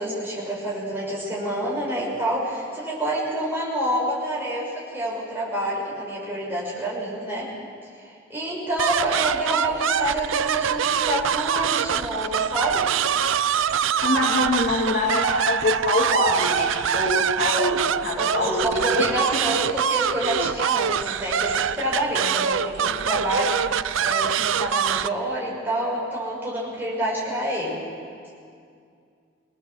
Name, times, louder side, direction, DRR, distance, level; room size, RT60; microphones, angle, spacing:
voice 1, 0.0-7.5 8.0-12.9 18.1-27.8, right 1 dB, 10° right, -5 dB, 6.1 m, -28 dB
sound 1, 8.8-25.1, right 8 dB, 90° right, 0.5 m, -24 dB
voice 2, 14.0-19.8, left 1 dB, 60° left, -3 dB, 2.9 m, -24 dB
24.0 x 19.5 x 7.5 m, 2.4 s
head